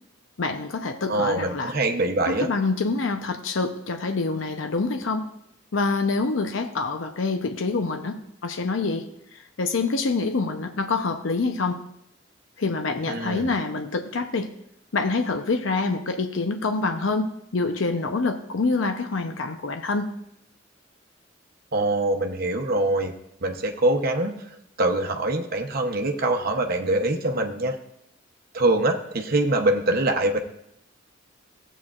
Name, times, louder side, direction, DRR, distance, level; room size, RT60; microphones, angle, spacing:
voice 1, 0.4-1.7 2.3-5.3 5.7-9.1 9.3-11.8 12.6-14.5 14.9-20.1, left 3 dB, 85° left, 6 dB, 0.7 m, -26 dB
voice 2, 1.1-2.5 13.1-13.5 21.7-23.1 23.4-24.4 24.8-27.8 28.5-30.4, right 2 dB, 50° right, 3 dB, 0.8 m, -24 dB
15.0 x 8.0 x 2.4 m, 0.76 s
head